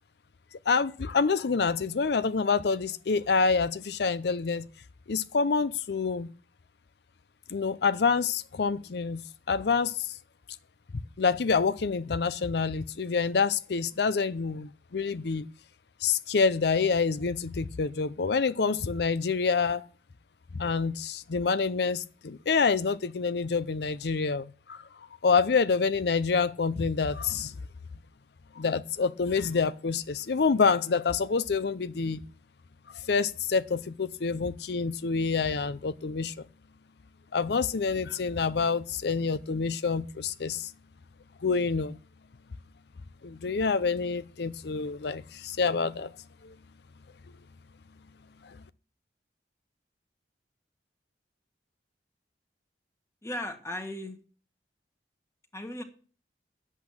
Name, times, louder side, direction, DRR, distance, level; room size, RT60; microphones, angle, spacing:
voice 1, 0.7-4.6 5.1-6.3 7.5-10.2 11.2-15.5 16.0-19.8 20.6-27.5 28.6-32.2 32.9-36.3 37.3-40.7 41.4-42.0 43.2-46.1 46.4-46.5 48.4-48.6, left 5 dB, 65° left, 0.5 m, -27 dB
voice 2, 53.2-54.2 55.5-55.8, left 1 dB, 15° left, 1.6 m, -36 dB
10.5 x 8.3 x 7.2 m
head